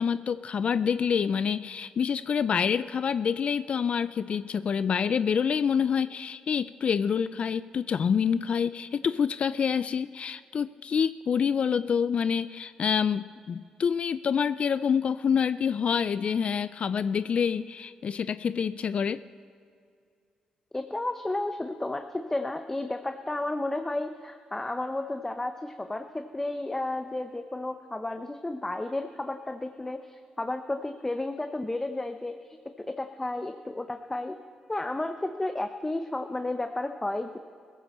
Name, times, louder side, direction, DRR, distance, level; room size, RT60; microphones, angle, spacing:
voice 1, 0.0-19.2, left 7 dB, 55° left, 15 dB, 0.3 m, -27 dB
voice 2, 20.7-34.4 34.7-37.4, left 2 dB, 15° left, 7 dB, 0.7 m, -32 dB
17.0 x 14.5 x 4.2 m, 2.3 s
cardioid pair, 75°, 2 cm